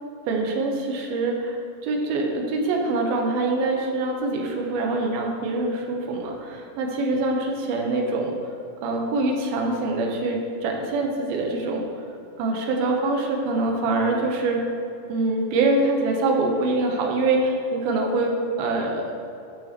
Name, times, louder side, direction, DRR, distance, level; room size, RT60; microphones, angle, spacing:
voice 1, 0.3-8.4 8.8-11.8 12.4-14.6 15.1-19.1, right 2 dB, 80° right, 1 dB, 2.7 m, -24 dB
11.5 x 6.1 x 2.9 m, 2.7 s
omnidirectional pair, 4.5 m